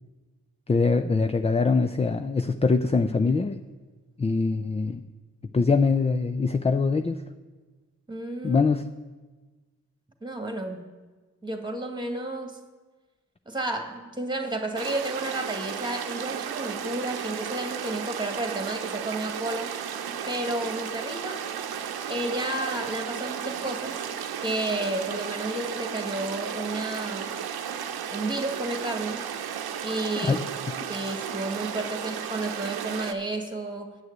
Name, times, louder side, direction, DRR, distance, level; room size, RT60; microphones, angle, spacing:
voice 1, 0.7-3.6 4.2-5.0 5.5-7.2 8.4-8.9 30.1-30.4, left 4 dB, 15° left, 9 dB, 0.4 m, -23 dB
voice 2, 8.1-8.7 10.2-10.8 11.4-12.6 13.5-19.7 20.3-21.4 22.1-24.0 24.4-27.4 28.1-29.2 29.8-30.4 30.9-34.0, right 2 dB, 10° right, 4 dB, 1.8 m, -31 dB
sound 1, 14.8-33.1, right 8 dB, 70° right, 0.8 m, -34 dB
9.4 x 6.4 x 8.0 m, 1.3 s
supercardioid pair, 50°, 39 cm